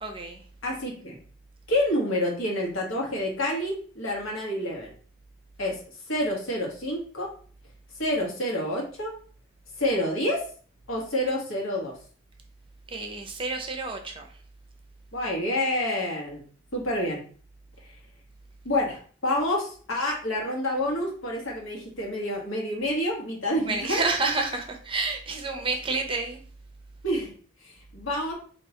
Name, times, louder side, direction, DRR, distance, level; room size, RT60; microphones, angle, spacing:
voice 1, 0.0-0.4 12.9-14.3 23.7-26.4, right 3 dB, 25° right, 4 dB, 0.5 m, -29 dB
voice 2, 0.6-1.2 1.7-4.9 5.6-5.8 6.1-7.3 8.0-9.1 9.8-10.4 10.9-11.9 15.1-16.4 16.7-17.2 18.6-24.1 27.0-27.3 27.9-28.3, left 1 dB, 85° left, -1 dB, 1.3 m, -28 dB
4.5 x 2.8 x 2.8 m, 0.44 s
head